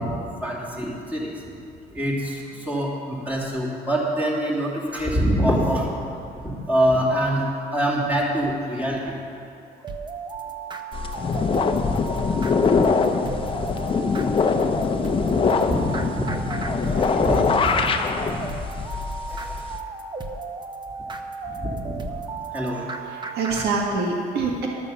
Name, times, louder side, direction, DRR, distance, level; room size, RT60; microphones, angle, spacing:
voice 1, 0.0-1.5 1.9-7.4 7.7-9.1 15.3-16.4 16.9-17.9 19.3-19.6 21.4-22.1 22.5-23.1, equal, 10° right, -5 dB, 2.7 m, -25 dB
sound 1, 9.8-23.7, right 4 dB, 25° right, 0.8 m, -34 dB
sound 2, 10.9-19.8, left 5 dB, 30° left, 0.7 m, -23 dB
voice 2, 23.0-24.7, right 4 dB, 70° right, -1 dB, 1.7 m, -26 dB
12.0 x 6.6 x 7.0 m, 2.6 s
cardioid pair, 110°, 17 cm